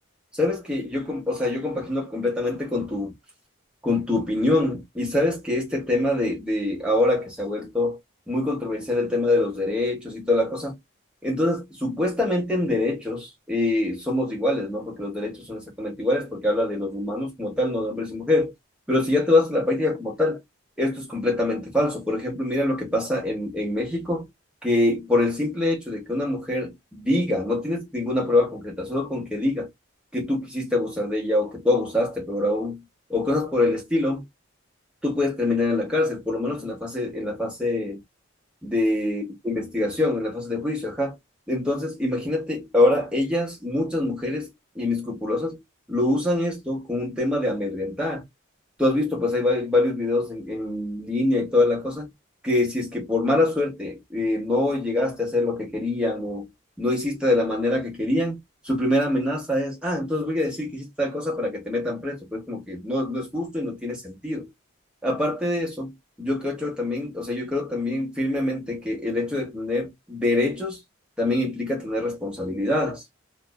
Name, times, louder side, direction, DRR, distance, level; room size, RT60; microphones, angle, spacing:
voice 1, 0.3-3.1 3.8-8.0 8.3-10.8 11.2-18.5 18.9-20.4 20.8-24.3 24.6-29.7 30.1-32.8 33.1-34.2 35.0-38.0 38.6-41.2 41.5-45.6 45.9-48.2 48.8-52.1 52.4-56.5 56.8-58.4 58.6-64.5 65.0-70.8 71.2-73.0, left 2 dB, 5° right, 0.9 m, -25 dB
2.5 x 2.2 x 2.3 m
head